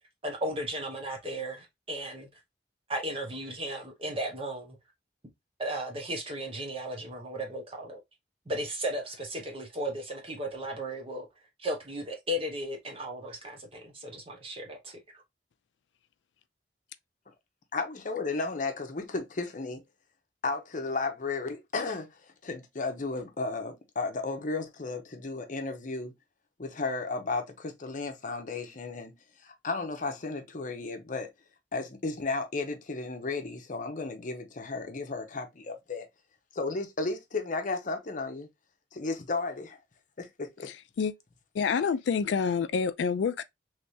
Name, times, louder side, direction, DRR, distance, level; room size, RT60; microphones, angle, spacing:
voice 1, 0.2-2.3 2.9-4.8 5.6-8.0 8.5-11.3 11.6-15.0, right 1 dB, 30° right, 1.1 m, -35 dB
voice 2, 17.7-19.8 20.4-26.1 26.6-29.2 29.4-31.3 31.7-36.1 36.5-38.5 38.9-39.8 40.2-40.7, left 3 dB, 45° left, 0.7 m, -34 dB
voice 3, 40.7-41.1 41.5-43.4, left 6 dB, 80° left, 0.3 m, -28 dB
3.3 x 3.1 x 2.7 m
head